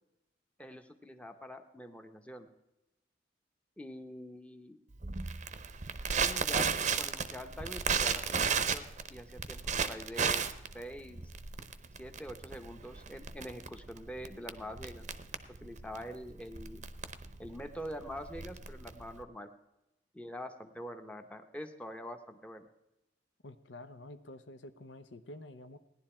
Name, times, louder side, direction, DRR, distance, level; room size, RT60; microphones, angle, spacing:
voice 1, 0.6-2.5 3.8-4.8 6.2-10.5 10.7-11.3 12.0-15.1 15.6-16.8 17.4-19.5 20.1-22.7, equal, 5° left, 6 dB, 0.8 m, -45 dB
Crackle, 5.0-19.2, right 6 dB, 40° right, 0.7 m, -34 dB
voice 2, 23.4-25.8, left 1 dB, 80° left, 10 dB, 0.8 m, -49 dB
17.0 x 11.0 x 4.4 m, 0.95 s
head